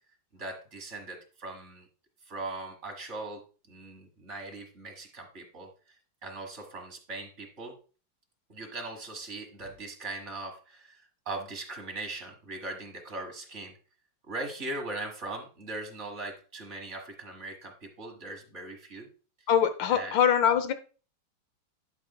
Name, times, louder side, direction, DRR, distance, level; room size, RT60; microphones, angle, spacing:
voice 1, 0.3-1.9 2.2-7.8 8.5-13.8 14.3-19.1 19.9-20.2, right 2 dB, 40° right, 3 dB, 1.7 m, -40 dB
voice 2, 19.5-20.7, left 8 dB, 70° left, 10 dB, 1.5 m, -23 dB
11.5 x 5.4 x 2.2 m, 0.36 s
omnidirectional pair, 2.2 m